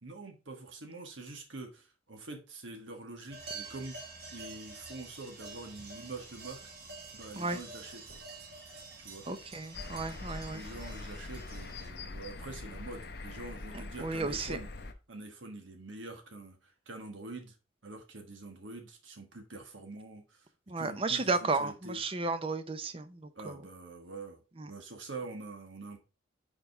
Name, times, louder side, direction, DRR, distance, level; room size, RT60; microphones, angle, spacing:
voice 1, 0.0-6.6 7.1-8.0 9.0-9.2 10.5-14.7 15.1-17.6 17.8-20.5 20.8-22.0 23.3-24.4 24.6-26.0, right 2 dB, 80° right, 4 dB, 1.4 m, -45 dB
sound 1, 3.3-11.9, right 3 dB, 55° right, 1.8 m, -48 dB
voice 2, 9.3-10.6 14.0-14.6 20.7-23.6 24.6-24.7, right 3 dB, 30° right, 11 dB, 0.6 m, -33 dB
sound 2, 9.7-14.9, left 3 dB, 55° left, 0.7 m, -43 dB
5.1 x 5.0 x 4.6 m, 0.32 s
head